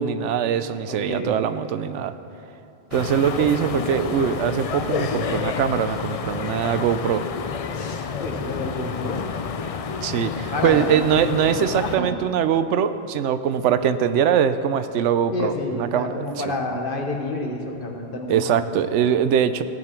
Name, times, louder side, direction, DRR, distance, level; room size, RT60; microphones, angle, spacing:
voice 1, 0.0-2.1 2.9-7.2 10.0-16.6 18.3-19.6, right 8 dB, 90° right, 12 dB, 0.9 m, -22 dB
voice 2, 0.9-1.3 7.7-9.2 10.2-11.0 11.4-12.1 15.3-18.4, left 2 dB, 50° left, 2 dB, 1.3 m, -29 dB
sound 1, 2.9-12.0, left 6 dB, 65° left, 0.3 m, -29 dB
15.5 x 8.6 x 4.5 m, 2.8 s
omnidirectional pair, 1.2 m